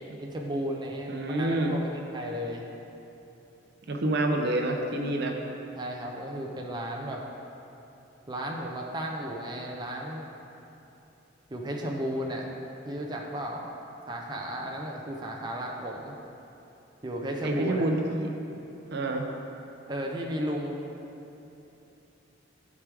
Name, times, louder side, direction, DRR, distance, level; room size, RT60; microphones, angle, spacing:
voice 1, 0.2-2.6 5.8-7.2 8.3-10.3 11.5-12.5 12.8-13.7 14.1-16.2 17.0-17.9 19.9-21.0, equal, 20° right, -1 dB, 0.6 m, -34 dB
voice 2, 1.1-1.7 3.9-5.4 17.4-18.3 18.9-19.3, right 1 dB, 60° right, 3 dB, 0.7 m, -27 dB
12.0 x 4.7 x 3.4 m, 2.9 s
head